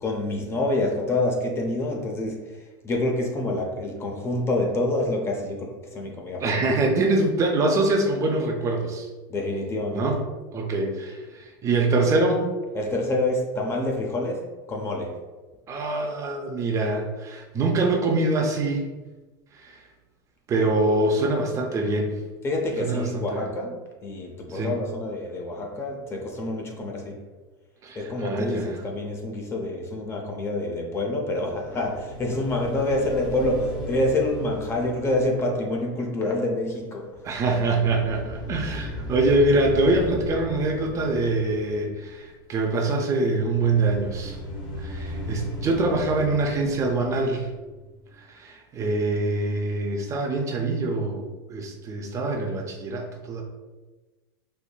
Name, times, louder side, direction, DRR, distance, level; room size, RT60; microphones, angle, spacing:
voice 1, 0.0-6.6 9.3-10.1 12.7-14.4 14.7-15.1 22.4-23.8 24.0-27.2 28.0-37.1, left 1 dB, 25° left, 1 dB, 0.6 m, -27 dB
voice 2, 6.4-9.1 9.9-10.2 10.5-12.5 15.7-18.9 19.5-19.8 20.5-22.2 22.8-23.4 24.5-24.8 27.8-28.8 37.2-44.4 44.8-47.5 48.2-53.4, right 2 dB, 30° right, 2 dB, 0.4 m, -24 dB
sound 1, 31.5-36.8 37.1-42.3 43.3-48.2, left 2 dB, 40° left, 0.9 m, -37 dB
4.4 x 2.6 x 2.3 m, 1.2 s
supercardioid pair, 130°, 11 cm